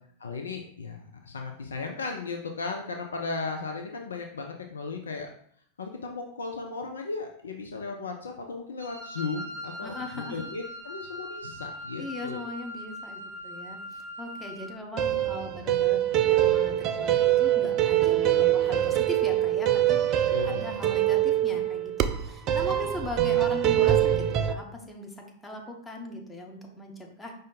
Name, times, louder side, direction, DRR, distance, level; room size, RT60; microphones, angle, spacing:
voice 1, 0.2-5.3 5.8-12.5 20.3-20.6, left 4 dB, 70° left, 3 dB, 0.4 m, -36 dB
Wind instrument woodwind instrument, 8.8-14.8, equal, 90° left, 1.3 m, -41 dB
voice 2, 9.8-10.4 12.0-20.0 20.4-27.3, left 1 dB, 10° left, 1 dB, 0.9 m, -39 dB
sound 1, 15.0-24.5, right 12 dB, 35° right, 0.3 m, -24 dB
5.0 x 2.6 x 3.9 m, 0.65 s
figure-of-eight pair, 90°, 0 cm